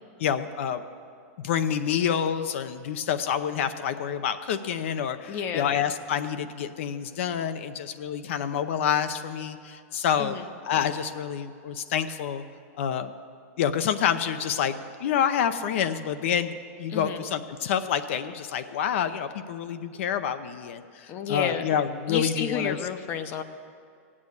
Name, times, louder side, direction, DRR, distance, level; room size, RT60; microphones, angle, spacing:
voice 1, 0.2-0.8 1.4-10.3 10.6-12.4 12.8-13.1 13.6-22.8, left 8 dB, 60° left, 10 dB, 0.7 m, -28 dB
voice 2, 5.3-5.7 10.2-10.4 16.9-17.2 21.1-21.7 22.1-23.4, left 7 dB, 25° left, 10 dB, 0.7 m, -31 dB
16.0 x 8.6 x 8.5 m, 2.3 s
supercardioid pair, 170°, 8 cm